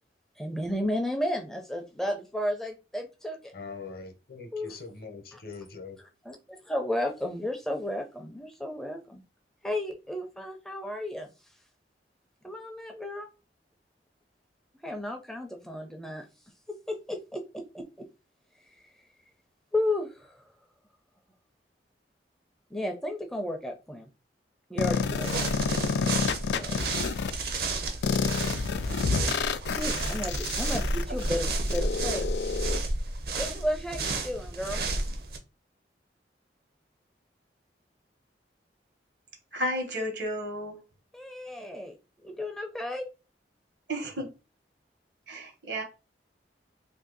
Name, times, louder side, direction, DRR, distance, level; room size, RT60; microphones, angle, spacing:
voice 1, 0.4-3.5 4.5-4.8 5.3-5.4 6.0-9.2 9.6-11.3 12.4-13.3 14.8-16.2 16.7-18.1 19.7-20.4 22.7-24.1 24.7-25.5 26.5-26.9 29.8-32.3 33.3-34.8 41.1-42.0 42.2-43.1, left 1 dB, 5° left, 0.4 m, -33 dB
voice 2, 3.5-6.0, left 4 dB, 55° left, 0.7 m, -42 dB
sound 1, 24.8-27.3 28.0-32.8, left 5 dB, 75° left, 0.3 m, -29 dB
sound 2, 24.8-35.4, right 2 dB, 60° right, 0.6 m, -32 dB
voice 3, 39.5-40.8 43.9-44.3 45.3-45.8, equal, 80° right, 1.2 m, -32 dB
2.7 x 2.6 x 3.8 m
head